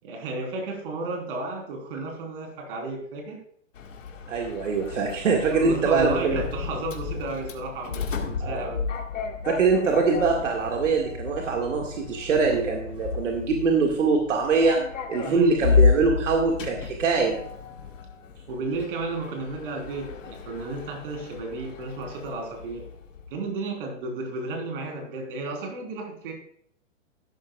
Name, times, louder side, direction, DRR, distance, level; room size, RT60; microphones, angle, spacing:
voice 1, 0.0-3.4 5.5-8.8 15.2-15.6 18.5-22.9 23.3-26.3, right 3 dB, 45° right, 2 dB, 4.1 m, -33 dB
Sliding door, 3.8-23.4, left 5 dB, 85° left, 1.9 m, -31 dB
voice 2, 4.3-6.4 8.4-8.7 9.4-14.8 15.1-17.4, right 4 dB, 75° right, 1 dB, 2.1 m, -23 dB
12.5 x 12.0 x 2.4 m, 0.64 s
hypercardioid pair, 155°, 38 cm